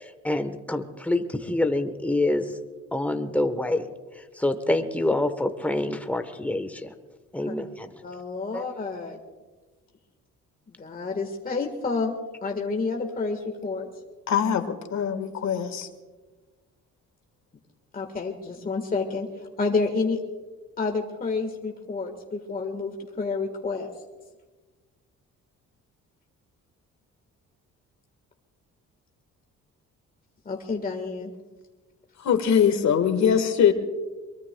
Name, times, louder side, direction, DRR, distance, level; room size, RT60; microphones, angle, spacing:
voice 1, 0.0-2.5 2.9-3.9 4.2-6.9 7.3-7.9 8.5-8.6, left 2 dB, 5° left, 8 dB, 1.1 m, -26 dB
voice 2, 8.0-9.2 10.7-12.1 12.4-13.9 17.9-19.3 19.6-20.2 20.8-23.9 30.4-31.3, left 4 dB, 30° left, 2 dB, 1.5 m, -29 dB
voice 3, 14.3-15.9 32.2-33.7, left 8 dB, 65° left, 8 dB, 1.6 m, -22 dB
23.0 x 23.0 x 2.3 m, 1.3 s
cardioid pair, 90°, 30 cm